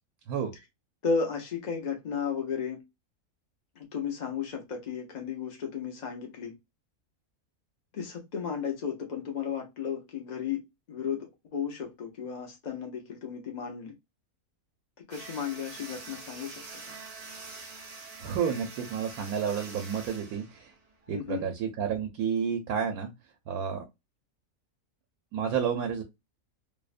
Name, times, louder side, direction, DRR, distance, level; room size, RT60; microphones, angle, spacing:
voice 1, 1.0-2.8 3.8-6.6 7.9-10.6 10.9-13.9 15.1-16.6 21.1-21.5, left 6 dB, 60° left, 0.4 m, -34 dB
sound 1, 15.1-21.1, right 3 dB, 55° right, 0.4 m, -45 dB
voice 2, 18.2-20.7 21.1-23.1 23.5-23.8 25.3-26.0, right 7 dB, 85° right, 1.1 m, -30 dB
2.7 x 2.0 x 2.4 m
omnidirectional pair, 1.5 m